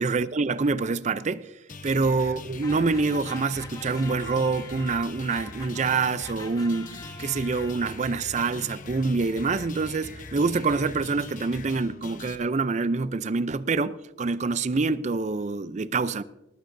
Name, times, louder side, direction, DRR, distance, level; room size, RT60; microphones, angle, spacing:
voice 1, 0.0-1.5 1.8-16.2, right 4 dB, 40° right, 0.5 m, -26 dB
sound 1, 1.7-12.4, left 3 dB, 45° left, 0.9 m, -42 dB
sound 2, 2.6-8.1, left 3 dB, 20° left, 0.9 m, -44 dB
20.0 x 14.5 x 2.6 m
head